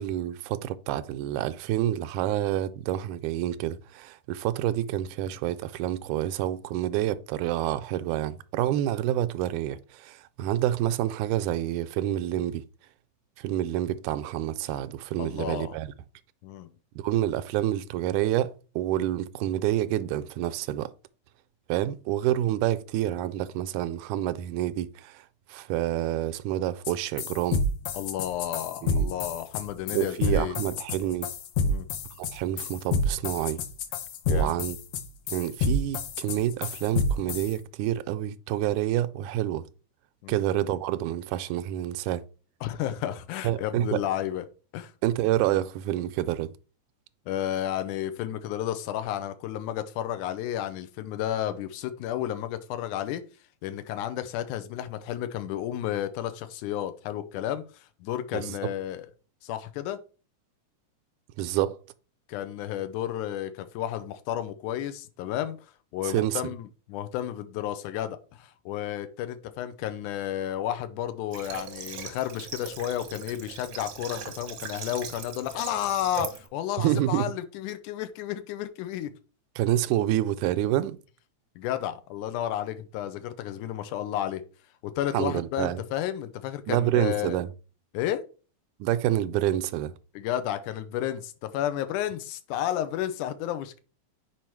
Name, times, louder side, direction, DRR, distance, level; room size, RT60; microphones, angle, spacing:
voice 1, 0.0-12.6 13.4-15.9 17.0-20.9 21.7-25.2 25.5-27.6 28.8-29.2 29.9-31.3 32.2-33.6 34.3-34.8 35.3-39.7 40.3-42.2 43.4-44.0 45.0-46.5 58.3-58.6 61.4-61.8 66.0-66.4 76.8-77.3 79.6-81.0 85.1-85.8 86.7-87.5 88.8-89.9, right 13 dB, 85° right, 2.0 m, -28 dB
voice 2, 15.2-15.8 16.4-16.7 27.9-30.7 31.6-31.9 34.3-34.5 40.2-40.4 42.6-44.4 44.7-44.9 47.3-53.2 53.6-59.1 59.4-60.0 62.3-65.6 65.9-79.1 81.6-84.4 84.8-87.4 87.9-88.2 90.2-93.8, left 11 dB, 90° left, 2.2 m, -32 dB
sound 1, 26.8-26.9 27.2-37.5, left 3 dB, 70° left, 1.8 m, -28 dB
Water / Water tap faucet, 71.3-76.5, right 6 dB, 60° right, 1.1 m, -39 dB
5.6 x 4.8 x 4.5 m
omnidirectional pair, 3.5 m